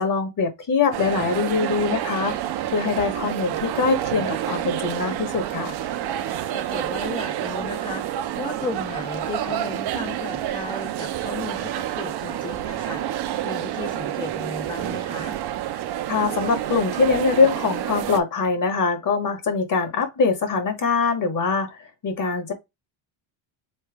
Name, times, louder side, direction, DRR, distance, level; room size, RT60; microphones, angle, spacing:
voice 1, 0.0-2.4 2.7-5.7 16.1-22.5, left 4 dB, 40° left, 1.3 m, -23 dB
sound 1, 0.9-18.2, right 12 dB, 55° right, 0.6 m, -28 dB
voice 2, 6.5-13.0 13.4-15.4, left 3 dB, 10° left, 0.4 m, -34 dB
4.3 x 3.3 x 3.4 m
cardioid pair, 145°, 47 cm